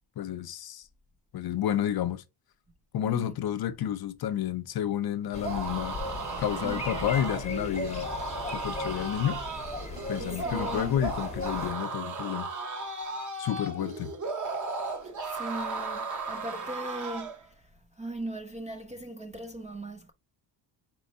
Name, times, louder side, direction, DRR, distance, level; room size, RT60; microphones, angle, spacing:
voice 1, 0.2-0.8 1.3-2.2 2.9-6.0 6.4-8.1 8.5-9.4 10.1-12.5 13.4-14.1, left 10 dB, 50° left, 0.6 m, -30 dB
voice 2, 3.0-3.4 6.6-6.8 10.2-10.9 15.3-17.6 18.0-20.1, right 1 dB, 15° right, 0.3 m, -39 dB
sound 1, 5.3-11.7, left 3 dB, 15° left, 0.8 m, -38 dB
sound 2, 5.3-17.4, right 3 dB, 40° right, 1.0 m, -35 dB
4.4 x 3.1 x 2.7 m
cardioid pair, 120°, 48 cm